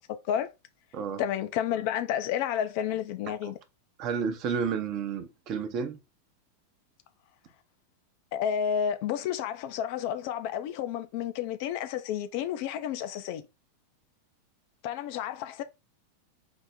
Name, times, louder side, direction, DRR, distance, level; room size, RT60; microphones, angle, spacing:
voice 1, 1.2-3.6 8.3-13.4 14.8-15.6, left 9 dB, 45° left, 0.4 m, -31 dB
voice 2, 4.0-6.0, right 6 dB, 40° right, 0.6 m, -31 dB
3.9 x 2.1 x 3.5 m
figure-of-eight pair, 90°, 0 cm